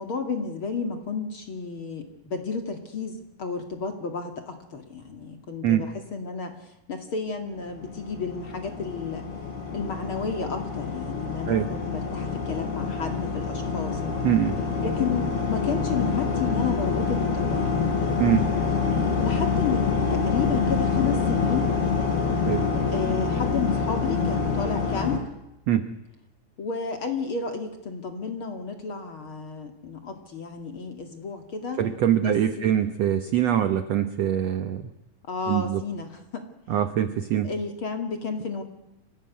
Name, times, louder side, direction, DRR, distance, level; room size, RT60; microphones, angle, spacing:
voice 1, 0.0-6.5 6.9-9.2 9.7-14.0 14.8-17.8 19.2-21.7 22.9-25.3 26.6-31.8 32.2-32.7 35.3-36.4 37.4-38.6, left 5 dB, 40° left, 5 dB, 2.5 m, -32 dB
sound 1, 7.7-25.2, left 5 dB, 85° left, 5.9 m, -26 dB
voice 2, 14.2-14.6 18.2-18.5 22.4-22.7 25.7-25.9 31.8-34.9 35.5-35.8 36.7-37.5, right 10 dB, 75° right, 10 dB, 1.5 m, -23 dB
25.5 x 17.5 x 9.6 m, 0.91 s
omnidirectional pair, 4.4 m